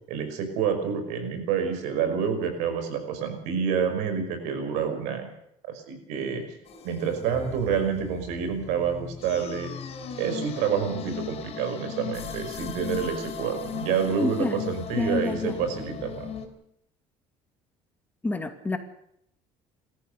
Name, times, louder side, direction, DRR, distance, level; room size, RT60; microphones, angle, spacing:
voice 1, 0.1-5.3 5.7-6.4 6.8-9.7 10.2-16.3, right 7 dB, 90° right, 8 dB, 5.4 m, -28 dB
sound 1, 6.7-16.5, left 8 dB, 55° left, 4.9 m, -37 dB
voice 2, 14.2-14.6 15.0-15.5 18.2-18.8, left 2 dB, 15° left, 7 dB, 2.5 m, -28 dB
29.0 x 14.0 x 6.8 m, 0.73 s
cardioid pair, 105°, 12 cm